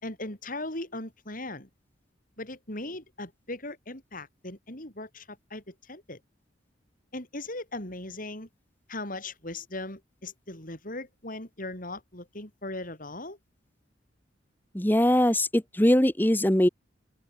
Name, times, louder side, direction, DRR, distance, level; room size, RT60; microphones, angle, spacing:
voice 1, 0.0-1.7 2.4-6.2 7.1-8.5 8.9-13.4, left 2 dB, 45° left, 7.1 m, -38 dB
voice 2, 14.7-16.7, left 1 dB, 10° left, 1.5 m, -22 dB
open air
head